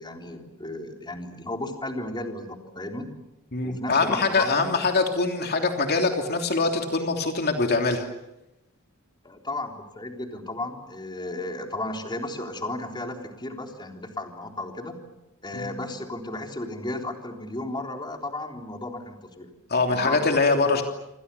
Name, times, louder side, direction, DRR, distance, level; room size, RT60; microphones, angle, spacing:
voice 1, 0.0-3.1 3.6-4.7 9.2-15.0 15.4-19.5 19.9-20.3, left 2 dB, 20° left, 3 dB, 3.7 m, -34 dB
voice 2, 3.5-8.1 15.5-15.7 19.7-20.8, left 3 dB, 50° left, 4 dB, 3.1 m, -23 dB
28.0 x 27.0 x 7.0 m, 0.90 s
head